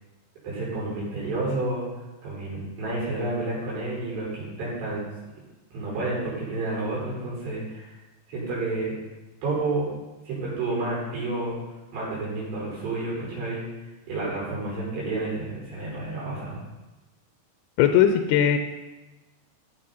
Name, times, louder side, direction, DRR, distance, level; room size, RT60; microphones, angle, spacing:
voice 1, 0.4-1.8 2.2-5.0 5.7-7.9 8.3-8.9 9.4-9.9 10.2-11.6 11.9-13.6 14.1-16.6, right 2 dB, 80° right, -6 dB, 6.7 m, -30 dB
voice 2, 17.8-18.6, left 9 dB, 80° left, 6 dB, 2.5 m, -19 dB
15.0 x 7.4 x 4.2 m, 1.1 s
omnidirectional pair, 4.8 m